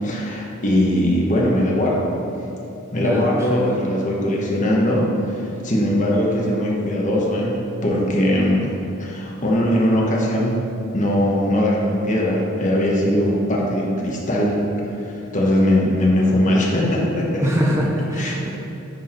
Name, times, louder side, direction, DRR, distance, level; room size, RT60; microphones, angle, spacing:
voice 1, 0.0-2.1 2.9-10.6 10.9-14.5 15.0-17.5 18.1-18.4, left 1 dB, 35° left, -3 dB, 1.3 m, -20 dB
voice 2, 3.0-3.8 17.4-18.5, equal, 15° right, -3 dB, 0.7 m, -23 dB
10.5 x 4.7 x 4.4 m, 2.8 s
head